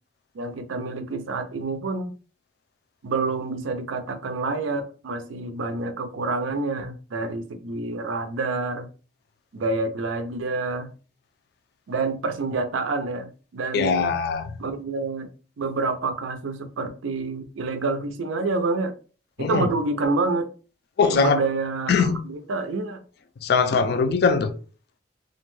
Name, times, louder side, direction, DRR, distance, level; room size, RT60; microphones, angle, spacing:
voice 1, 0.3-2.1 3.0-8.9 9.5-10.9 11.9-14.1 14.6-15.3 15.6-18.9 19.4-20.5 21.1-23.0, right 3 dB, 90° right, 0.4 m, -28 dB
voice 2, 13.7-14.5 19.4-19.7 21.0-21.4 21.9-22.2 23.4-24.5, left 5 dB, 55° left, 0.3 m, -21 dB
2.4 x 2.1 x 3.0 m
head